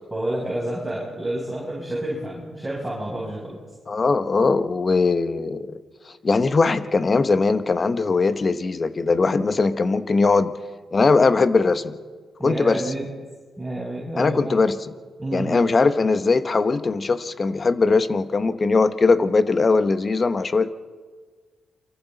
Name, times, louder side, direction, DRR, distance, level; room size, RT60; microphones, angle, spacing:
voice 1, 0.1-3.6 12.4-13.1 13.6-14.6 15.2-15.7, right 1 dB, 10° right, -6 dB, 7.3 m, -29 dB
voice 2, 3.9-5.8 6.2-10.5 10.9-12.0 12.4-12.8 14.2-14.9 15.3-20.7, left 4 dB, 45° left, 11 dB, 1.1 m, -20 dB
28.5 x 24.0 x 4.1 m, 1.5 s
supercardioid pair, 60°, 0 cm